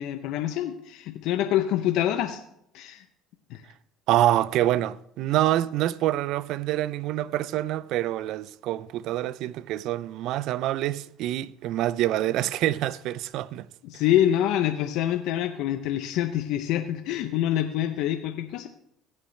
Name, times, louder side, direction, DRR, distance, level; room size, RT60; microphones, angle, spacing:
voice 1, 0.0-2.4 2.7-3.0 3.5-3.6 13.8-18.7, left 12 dB, 75° left, 0.7 m, -26 dB
voice 2, 4.1-13.7, right 14 dB, 70° right, 0.4 m, -26 dB
17.0 x 6.6 x 3.2 m
supercardioid pair, 90°, 0 cm